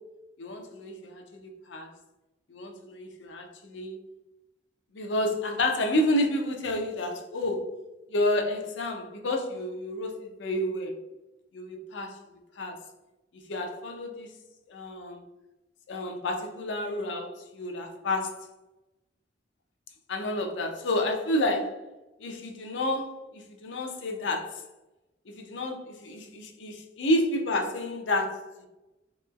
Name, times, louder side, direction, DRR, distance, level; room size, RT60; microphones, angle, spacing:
voice 1, 0.4-1.9 2.5-4.0 4.9-7.7 8.1-10.9 11.5-12.2 12.6-12.8 13.5-14.3 14.7-15.2 15.9-18.5 20.1-21.8 22.2-24.6 25.3-28.7, left 1 dB, 80° left, 3 dB, 0.5 m, -30 dB
3.0 x 2.9 x 2.3 m, 1.0 s
head